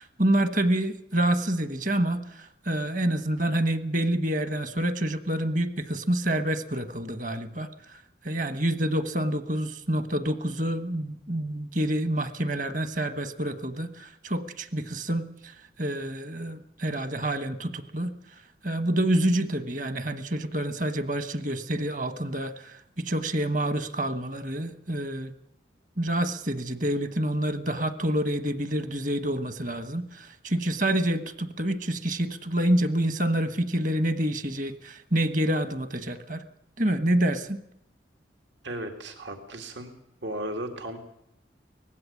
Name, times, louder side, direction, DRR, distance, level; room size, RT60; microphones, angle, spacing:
voice 1, 0.0-18.1 18.6-25.3 26.0-36.4 36.8-37.6, right 1 dB, 45° right, 12 dB, 1.3 m, -27 dB
voice 2, 38.6-39.9 40.2-41.0, right 1 dB, 85° right, 5 dB, 2.3 m, -35 dB
19.0 x 15.5 x 8.6 m, 0.77 s
head